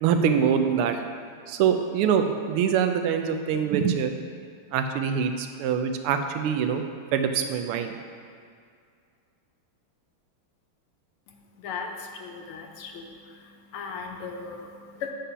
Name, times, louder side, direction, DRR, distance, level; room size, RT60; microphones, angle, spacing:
voice 1, 0.0-1.0 1.5-4.1 4.7-6.8 7.1-8.0, right 7 dB, 90° right, 6 dB, 1.5 m, -24 dB
voice 2, 11.3-15.1, left 5 dB, 85° left, 2 dB, 1.6 m, -38 dB
8.4 x 3.8 x 5.5 m, 2.3 s
omnidirectional pair, 2.4 m